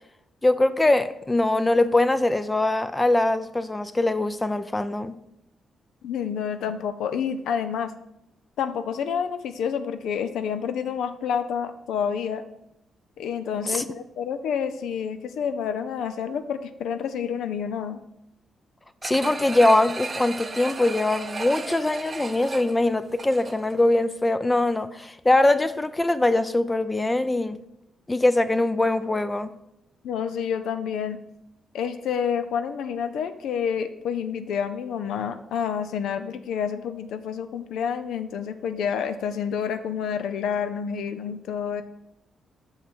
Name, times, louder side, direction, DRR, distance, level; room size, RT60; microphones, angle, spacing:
voice 1, 0.4-5.2 13.7-13.8 19.0-27.6 28.1-29.5, left 2 dB, 20° left, 12 dB, 0.5 m, -22 dB
voice 2, 6.0-7.9 8.6-12.4 13.2-18.0 30.0-31.2 31.7-41.8, left 7 dB, 80° left, 10 dB, 0.5 m, -29 dB
sound 1, 19.0-23.8 24.2-24.3, right 3 dB, 35° right, 0.9 m, -35 dB
5.7 x 5.3 x 6.0 m, 0.82 s
supercardioid pair, 60°, 0 cm